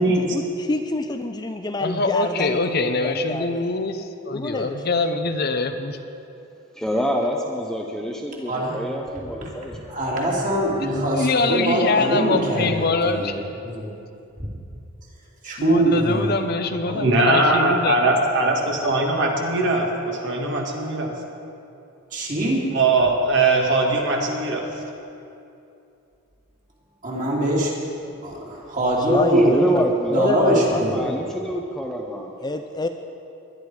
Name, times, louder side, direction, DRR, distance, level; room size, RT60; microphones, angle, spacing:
voice 1, 0.0-3.7 4.3-4.8 29.0-29.9 30.1-31.4 32.4-32.9, left 2 dB, 20° left, 6 dB, 0.4 m, -27 dB
voice 2, 1.8-6.0 10.8-13.4 15.6-18.0, left 3 dB, 50° left, 7 dB, 0.8 m, -24 dB
voice 3, 6.7-10.0 29.3-32.3, equal, 5° left, 0 dB, 0.8 m, -27 dB
voice 4, 9.9-13.4 13.6-13.9 14.4-14.5 15.4-16.4 16.8-17.0 22.1-22.6 27.0-27.7 28.2-29.5 30.1-31.0, right 1 dB, 40° right, -3 dB, 2.9 m, -22 dB
voice 5, 17.0-21.1 22.7-24.6, right 2 dB, 55° right, 1 dB, 1.9 m, -20 dB
20.0 x 11.5 x 4.9 m, 2.7 s
head